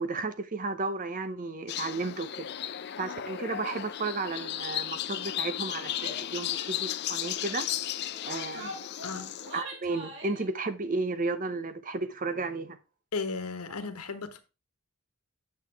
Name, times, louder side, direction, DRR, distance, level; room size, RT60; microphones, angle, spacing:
voice 1, 0.0-2.5 3.0-7.7 8.2-8.7 9.5-12.8, right 3 dB, 35° right, 0.7 m, -33 dB
sound 1, 1.7-9.6, left 11 dB, 50° left, 0.5 m, -35 dB
Female speech woman speaking / Yell, 6.0-6.3 6.6-6.7 7.0-7.3 8.0-10.5, right 1 dB, 55° right, 2.6 m, -44 dB
voice 2, 9.0-9.3 13.1-14.4, left 4 dB, 85° left, 1.3 m, -35 dB
7.9 x 6.8 x 3.5 m
head